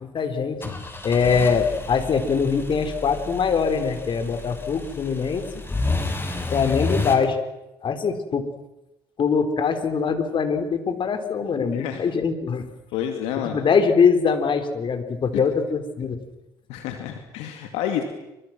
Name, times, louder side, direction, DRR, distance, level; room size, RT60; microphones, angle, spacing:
voice 1, 0.1-5.4 6.5-7.4 7.8-8.5 9.2-12.7 13.4-16.2, left 6 dB, 50° left, 7 dB, 4.5 m, -22 dB
sound 1, 0.6-7.2, left 3 dB, 20° left, 6.7 m, -30 dB
voice 2, 11.5-12.0 12.9-13.6 15.3-15.4 16.7-18.0, left 10 dB, 80° left, 5 dB, 2.7 m, -29 dB
28.5 x 25.5 x 6.3 m, 0.93 s
hypercardioid pair, 60°, 10 cm